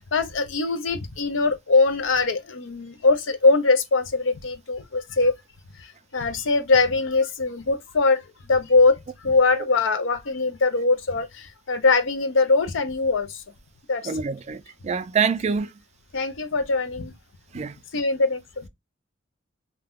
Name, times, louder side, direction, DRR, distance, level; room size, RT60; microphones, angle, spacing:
voice 1, 0.0-5.3 6.1-13.4 13.9-14.1 16.1-17.1 17.9-18.7, left 3 dB, 75° left, 0.6 m, -22 dB
voice 2, 14.1-15.7 17.5-17.7, right 6 dB, 35° right, 0.3 m, -25 dB
2.7 x 2.2 x 3.5 m
head